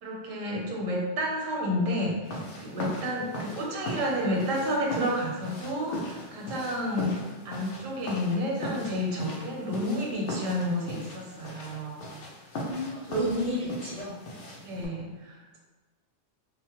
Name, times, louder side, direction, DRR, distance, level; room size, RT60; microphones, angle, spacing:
voice 1, 0.0-7.1 7.4-12.0 14.6-15.6, equal, 90° right, -1 dB, 1.0 m, -30 dB
sound 1, 2.3-14.9, left 1 dB, 70° left, 0.9 m, -39 dB
voice 2, 12.7-14.1, equal, 45° left, -8 dB, 0.5 m, -30 dB
2.9 x 2.1 x 2.9 m, 1.2 s
omnidirectional pair, 1.3 m